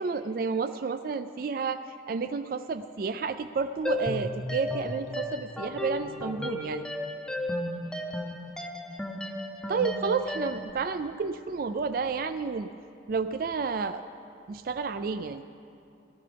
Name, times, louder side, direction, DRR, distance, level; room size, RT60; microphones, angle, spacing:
voice 1, 0.0-6.9 9.7-12.7 13.1-14.0 14.5-15.4, right 5 dB, 50° right, 10 dB, 0.3 m, -31 dB
sound 1, 3.8-10.7, left 1 dB, 5° left, 0.6 m, -34 dB
18.0 x 13.5 x 3.4 m, 2.6 s
head